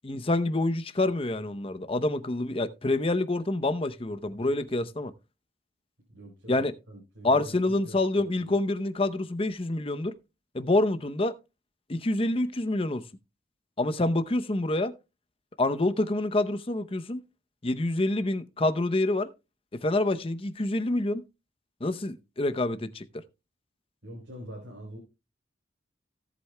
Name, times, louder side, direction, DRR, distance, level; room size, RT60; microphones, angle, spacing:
voice 1, 0.0-5.1 6.5-6.8 7.2-10.1 10.5-11.3 11.9-13.0 13.8-14.9 15.6-17.2 17.6-19.3 19.7-21.2 21.8-23.0, left 2 dB, 30° left, 0.7 m, -27 dB
voice 2, 6.1-8.5 24.0-25.0, right 1 dB, 90° right, 3.6 m, -45 dB
17.0 x 8.0 x 2.2 m
head